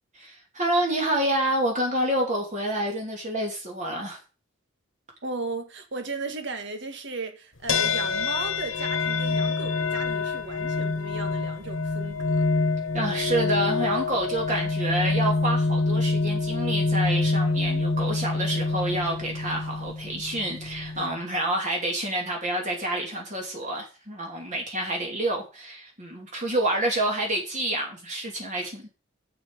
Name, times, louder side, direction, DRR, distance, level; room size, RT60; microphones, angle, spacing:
voice 1, 0.1-4.2 12.9-28.9, right 1 dB, 40° right, 2.7 m, -28 dB
voice 2, 5.2-12.5 21.0-21.1, right 3 dB, 65° right, 2.0 m, -36 dB
sound 1, 7.7-21.2, left 3 dB, 80° left, 1.4 m, -26 dB
8.7 x 8.1 x 5.1 m
head